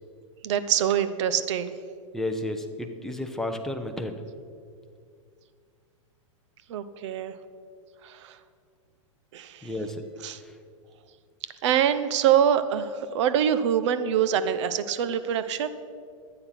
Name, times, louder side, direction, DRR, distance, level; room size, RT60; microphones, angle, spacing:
voice 1, 0.4-1.7 6.7-7.3 8.0-8.3 9.3-9.7 10.2-10.4 11.6-15.7, right 9 dB, 60° right, 12 dB, 0.8 m, -24 dB
voice 2, 2.1-4.2 9.6-9.9, left 1 dB, ahead, 4 dB, 0.8 m, -32 dB
12.0 x 8.7 x 5.8 m, 2.2 s
hypercardioid pair, 140°, 17 cm